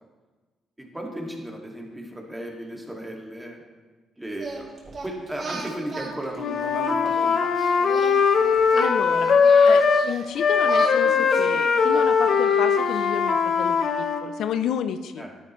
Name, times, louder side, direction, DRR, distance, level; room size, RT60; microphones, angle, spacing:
voice 1, 0.8-3.6 4.2-7.9 15.2-15.3, right 1 dB, 10° right, -1 dB, 2.2 m, -36 dB
Singing, 4.3-7.4 7.8-10.3 10.6-13.2, right 3 dB, 40° right, 3.4 m, -37 dB
Wind instrument woodwind instrument, 6.4-10.1 10.4-14.2, left 5 dB, 60° left, 0.9 m, -20 dB
voice 2, 8.8-9.4 9.6-15.5, left 8 dB, 75° left, 10 dB, 0.5 m, -31 dB
12.5 x 10.5 x 3.2 m, 1.3 s
cardioid pair, 90°, 0 cm